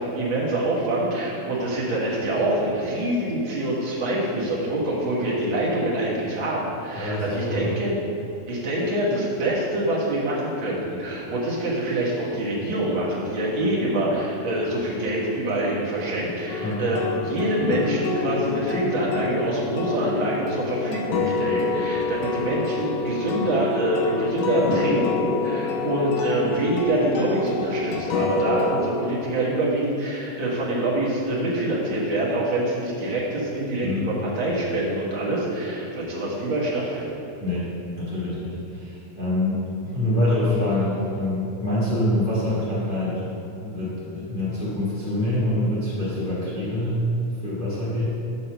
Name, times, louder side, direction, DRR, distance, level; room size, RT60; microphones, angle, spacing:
voice 1, 0.0-7.9 8.5-37.1, right 1 dB, 50° right, -6 dB, 1.6 m, -25 dB
voice 2, 6.9-7.7 16.6-16.8 33.8-34.0 37.4-37.7 38.0-39.6 39.9-43.2 43.6-47.0 47.4-48.0, left 1 dB, 55° left, -9 dB, 0.5 m, -25 dB
sound 1, 16.5-28.8, left 4 dB, 75° left, 2.2 m, -27 dB
7.5 x 4.1 x 6.6 m, 2.8 s
omnidirectional pair, 3.8 m